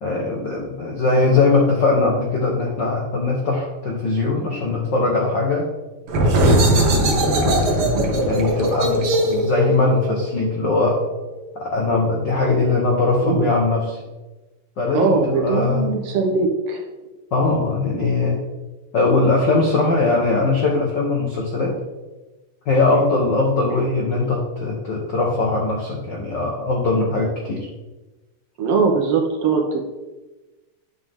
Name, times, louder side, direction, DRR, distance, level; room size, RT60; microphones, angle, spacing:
voice 1, 0.0-5.7 6.4-7.2 7.7-7.9 8.2-11.0 11.5-14.0 14.8-15.9 17.3-18.4 18.9-21.7 22.7-27.7, left 3 dB, 80° left, -1 dB, 1.0 m, -20 dB
sound 1, 6.1-11.5, right 1 dB, 85° right, 0.9 m, -20 dB
voice 2, 6.7-7.3 7.9-8.1 13.2-13.5 14.9-16.8 22.9-23.0 28.6-29.8, right 4 dB, 65° right, 2 dB, 1.6 m, -21 dB
10.5 x 6.6 x 3.6 m, 1.1 s
omnidirectional pair, 3.8 m